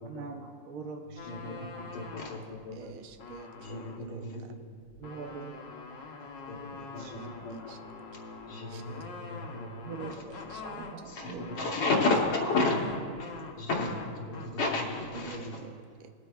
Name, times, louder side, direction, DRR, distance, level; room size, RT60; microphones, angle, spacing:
voice 1, 0.0-2.2 5.0-7.1 7.4-7.5 9.8-10.2 10.7-11.5, right 5 dB, 65° right, 2 dB, 1.0 m, -44 dB
sound 1, 1.2-2.5 2.9-4.1 4.9-15.4, left 4 dB, 65° left, 1.6 m, -44 dB
voice 2, 1.3-2.9 3.6-4.5 6.5-6.6 6.9-7.7 8.5-10.7 11.1-15.6, left 2 dB, 80° left, -5 dB, 2.0 m, -33 dB
voice 3, 2.7-4.6 7.1-7.8 8.7-9.1 10.3-11.3 15.1-16.1, right 8 dB, 80° right, 7 dB, 1.4 m, -49 dB
20.5 x 8.5 x 2.3 m, 2.1 s
omnidirectional pair, 2.3 m